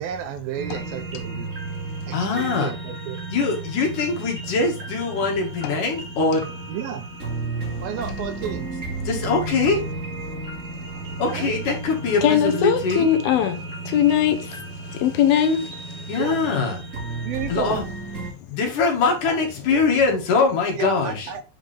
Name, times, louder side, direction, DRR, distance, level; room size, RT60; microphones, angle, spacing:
voice 1, 0.0-1.5 2.1-3.2 6.7-7.1 7.8-8.7 11.3-11.5 16.2-16.4 17.2-17.8 19.3-19.4 20.8-21.4, right 9 dB, 75° right, 2.5 m, -32 dB
After the flu, 0.6-18.3, right 3 dB, 25° right, 2.3 m, -33 dB
voice 2, 2.1-2.7 3.3-6.4 9.1-9.8 11.2-13.1 16.1-16.8 17.5-17.8 18.5-21.3, left 4 dB, 60° left, 3.3 m, -22 dB
voice 3, 12.2-16.1, left 9 dB, 80° left, 2.6 m, -21 dB
9.0 x 5.1 x 3.5 m
omnidirectional pair, 4.4 m